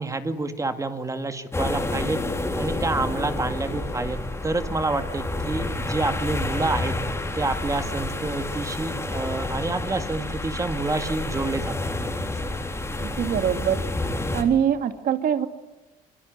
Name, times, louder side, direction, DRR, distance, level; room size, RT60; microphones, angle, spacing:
voice 1, 0.0-2.2 2.6-7.0 7.3-12.1, right 3 dB, 20° right, 7 dB, 2.3 m, -28 dB
sound 1, 1.5-14.4, left 2 dB, 15° left, 4.3 m, -29 dB
voice 2, 13.0-13.8 14.3-15.5, right 9 dB, 60° right, 8 dB, 2.4 m, -23 dB
26.5 x 23.5 x 9.6 m, 1.1 s
cardioid pair, 110°, 17 cm